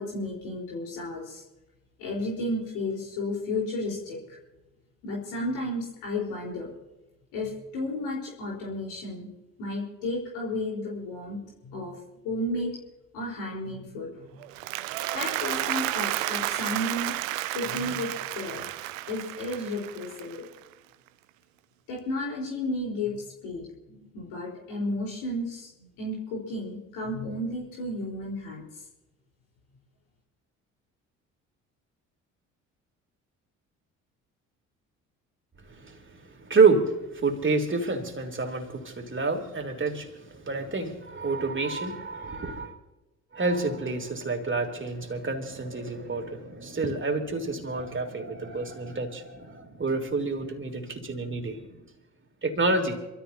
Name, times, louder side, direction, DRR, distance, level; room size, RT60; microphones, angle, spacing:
voice 1, 0.0-1.4 2.0-4.4 5.0-6.7 7.3-9.3 9.6-12.7 13.1-14.4 14.7-14.8 15.1-17.1 17.5-18.6 19.1-20.5 21.9-28.8, left 1 dB, 75° left, -2 dB, 4.5 m, -33 dB
Applause, 14.4-20.7, right 16 dB, 80° right, 0.6 m, -32 dB
voice 2, 35.7-36.0 36.4-42.7 43.3-51.8 52.4-53.0, right 3 dB, 30° right, 4 dB, 3.2 m, -28 dB
27.0 x 14.0 x 2.8 m, 1.0 s
hypercardioid pair, 50°, 39 cm